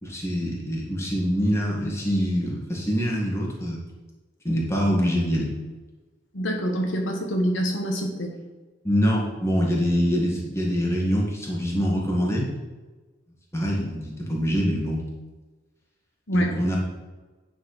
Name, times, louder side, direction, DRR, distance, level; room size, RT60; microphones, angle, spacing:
voice 1, 0.0-3.8 4.4-5.5 8.8-12.5 13.5-15.0 16.3-16.8, equal, 15° left, -3 dB, 2.0 m, -24 dB
voice 2, 6.3-8.3 16.3-16.5, equal, 75° left, 2 dB, 1.4 m, -25 dB
9.5 x 4.7 x 5.9 m, 1.2 s
head